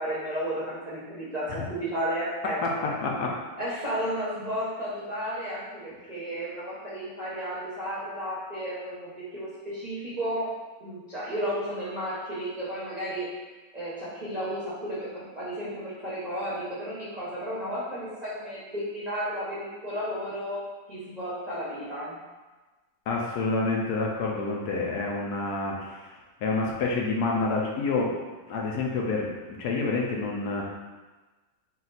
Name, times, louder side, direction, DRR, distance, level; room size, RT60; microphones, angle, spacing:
voice 1, 0.0-2.9 3.6-10.5 10.8-13.3 13.7-20.6 20.9-22.2, equal, 35° right, -10 dB, 0.7 m, -33 dB
voice 2, 3.0-3.3 23.1-26.1 26.4-28.1 28.5-29.3 29.6-30.6, left 3 dB, 75° left, -1 dB, 1.1 m, -28 dB
4.0 x 2.3 x 4.0 m, 1.3 s
omnidirectional pair, 1.8 m